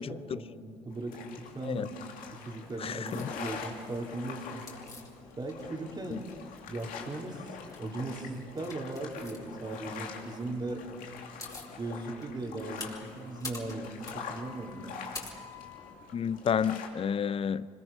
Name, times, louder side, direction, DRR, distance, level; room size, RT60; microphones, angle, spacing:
voice 1, 0.0-1.9 2.3-4.7 5.4-6.3 6.7-7.4 7.8-10.9 11.8-14.9, right 2 dB, 30° right, 0 dB, 3.9 m, -38 dB
sound 1, 0.9-16.9, left 6 dB, 70° left, 2.8 m, -45 dB
voice 2, 2.8-3.3 6.1-6.2 16.1-17.7, left 7 dB, 40° left, 18 dB, 0.6 m, -30 dB
sound 2, 3.1-3.3 4.7-5.8 6.1-7.0 7.5-7.9 8.6-9.4 10.9-11.0 11.2-11.7 12.2-15.9, left 3 dB, 25° left, 4.3 m, -45 dB
25.5 x 21.0 x 5.7 m, 2.5 s
hypercardioid pair, 65°, 15 cm